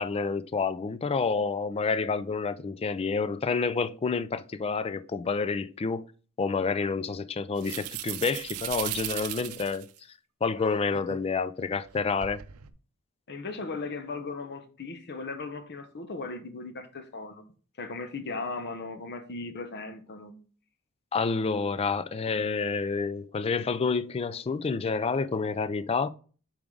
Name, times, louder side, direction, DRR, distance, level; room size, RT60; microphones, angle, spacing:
voice 1, 0.0-6.1 6.4-9.9 10.4-12.4 21.1-26.1, left 4 dB, 25° left, 0.4 m, -29 dB
sound 1, 7.6-10.0 10.6-11.2 11.9-12.7, right 13 dB, 80° right, 0.6 m, -37 dB
voice 2, 13.3-17.4 17.8-20.3, left 3 dB, 50° left, 0.9 m, -37 dB
7.1 x 4.9 x 3.8 m
head